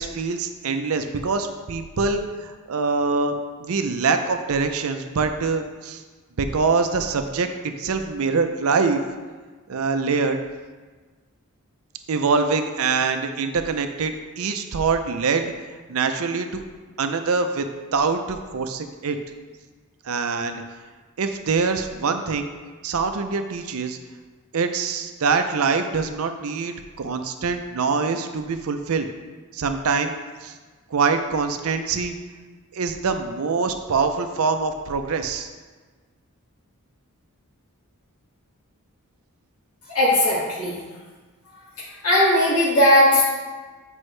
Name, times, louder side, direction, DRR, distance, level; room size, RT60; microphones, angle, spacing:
voice 1, 0.0-6.0 6.4-9.0 9.7-10.4 12.1-15.5 15.9-16.6 17.0-19.2 20.0-20.6 21.2-22.5 22.8-24.0 24.5-29.1 29.5-30.1 30.4-30.5 30.9-32.1 32.7-35.5, right 4 dB, 70° right, 7 dB, 0.5 m, -24 dB
voice 2, 39.9-40.8 41.8-43.2, left 1 dB, 75° left, -7 dB, 1.9 m, -18 dB
7.9 x 5.3 x 3.2 m, 1.4 s
head